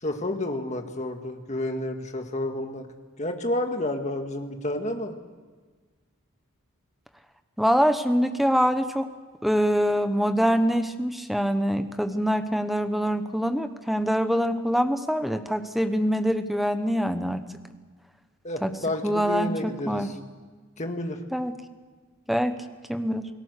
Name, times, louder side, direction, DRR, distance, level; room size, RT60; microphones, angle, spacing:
voice 1, 0.0-2.9 3.2-5.2 18.4-20.1 20.8-21.2, left 1 dB, 30° left, 5 dB, 1.8 m, -30 dB
voice 2, 7.6-9.1 9.4-17.4 18.6-18.7 19.0-20.1 21.3-21.6 22.3-22.6 22.9-23.3, equal, ahead, 9 dB, 1.0 m, -24 dB
28.5 x 18.5 x 6.7 m, 1.4 s
head